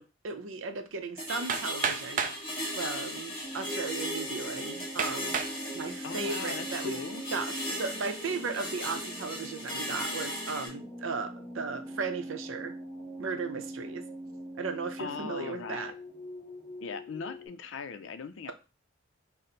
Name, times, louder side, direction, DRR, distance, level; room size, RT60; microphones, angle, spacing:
voice 1, 0.0-5.4 5.7-7.0 7.3-12.7 13.2-14.0 14.6-15.9, right 4 dB, 85° right, 7 dB, 0.6 m, -36 dB
sound 1, 1.2-10.7, equal, 25° left, 1.6 m, -37 dB
Hammer, 1.5-2.4 3.3-3.4 4.0-4.1 5.0-5.6 6.2-6.6, right 6 dB, 40° right, 0.3 m, -31 dB
sound 2, 3.4-17.5, right 1 dB, 5° left, 1.2 m, -43 dB
voice 2, 6.0-7.2 15.0-15.9 16.8-18.5, left 5 dB, 70° left, 11 dB, 0.4 m, -39 dB
4.2 x 2.1 x 3.8 m, 0.30 s
head